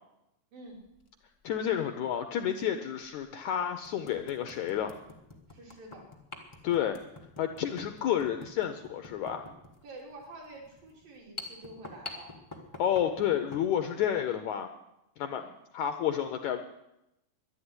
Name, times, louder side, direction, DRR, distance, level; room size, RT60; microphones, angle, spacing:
sound 1, 0.8-1.1 2.5-2.6 3.2-3.3 3.8-13.7, left 2 dB, 45° left, 0.3 m, -47 dB
voice 1, 1.4-4.9 6.6-7.0 7.4-9.5 12.8-14.7 15.2-15.4 15.7-16.6, left 9 dB, 75° left, 7 dB, 1.8 m, -30 dB
voice 2, 5.5-6.1 9.8-12.3 15.3-15.5, right 2 dB, 70° right, -1 dB, 4.9 m, -48 dB
11.5 x 11.0 x 9.7 m, 0.87 s
omnidirectional pair, 4.1 m